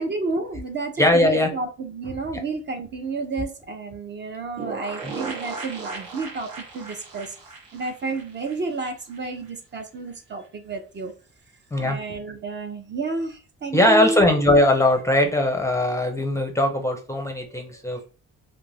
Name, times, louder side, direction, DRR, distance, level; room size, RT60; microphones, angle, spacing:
voice 1, 0.0-7.3 7.7-11.1 11.8-14.3, right 3 dB, 35° right, 6 dB, 0.5 m, -31 dB
voice 2, 1.0-1.5 5.0-5.1 11.7-12.0 13.7-18.1, left 1 dB, 10° left, 4 dB, 0.5 m, -20 dB
sound 1, 4.6-9.2 9.5-9.6 9.8-9.9, right 4 dB, 85° right, 1.0 m, -36 dB
2.4 x 2.2 x 3.2 m, 0.36 s
cardioid pair, 90°, 30 cm